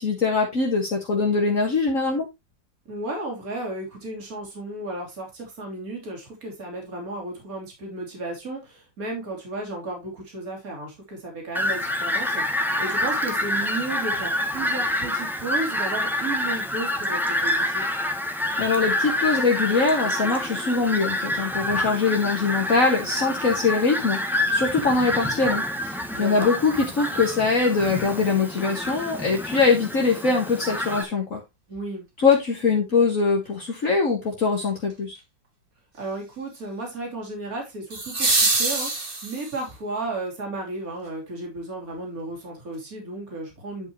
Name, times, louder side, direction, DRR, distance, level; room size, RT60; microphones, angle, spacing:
voice 1, 0.0-2.3 18.6-31.4 32.2-35.2, left 4 dB, 45° left, 1.9 m, -22 dB
voice 2, 2.9-18.0 26.1-26.5 31.7-32.1 36.0-43.9, right 2 dB, 50° right, 3.6 m, -34 dB
Fowl, 11.5-31.0, left 1 dB, ahead, 1.5 m, -27 dB
sound 1, 32.3-32.4 37.9-39.7 41.9-42.0, right 3 dB, 30° right, 1.8 m, -24 dB
11.0 x 5.3 x 3.1 m
omnidirectional pair, 2.0 m